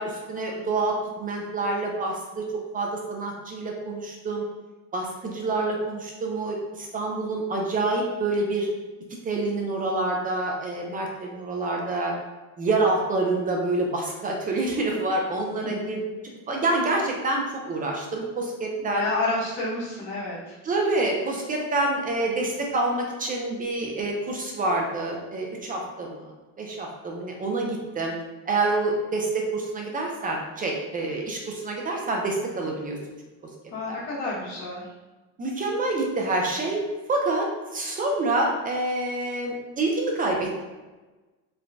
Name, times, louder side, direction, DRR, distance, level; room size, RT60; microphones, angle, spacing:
voice 1, 0.0-2.4 2.7-4.4 4.9-8.7 9.2-12.1 12.6-16.0 16.5-19.1 20.6-26.3 26.6-28.1 28.5-33.0 33.9-34.0 35.4-37.5 37.7-40.6, right 2 dB, 25° right, 0 dB, 0.4 m, -27 dB
voice 2, 18.8-20.6 33.7-34.9, left 2 dB, 80° left, -6 dB, 1.3 m, -29 dB
3.1 x 2.1 x 2.5 m, 1.2 s
cardioid pair, 110°, 33 cm